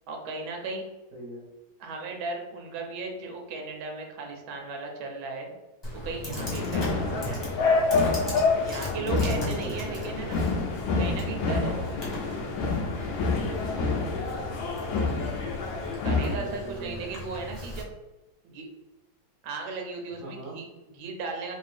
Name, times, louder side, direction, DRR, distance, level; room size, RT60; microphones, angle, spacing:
voice 1, 0.1-0.8 1.8-5.5 5.9-7.4 8.6-10.4 11.0-12.2 16.0-17.9 18.4-18.6 19.4-21.5, right 3 dB, 90° right, 2 dB, 1.4 m, -36 dB
voice 2, 1.1-1.4 6.9-7.3 8.9-9.9 13.8-14.5 16.3-17.2 20.1-20.6, right 2 dB, 50° right, -2 dB, 1.3 m, -40 dB
Computer keyboard, 5.8-17.8, equal, 15° left, 0.9 m, -38 dB
sound 1, 6.4-16.4, left 4 dB, 80° left, 1.3 m, -27 dB
3.3 x 2.6 x 3.2 m, 1.0 s
omnidirectional pair, 2.1 m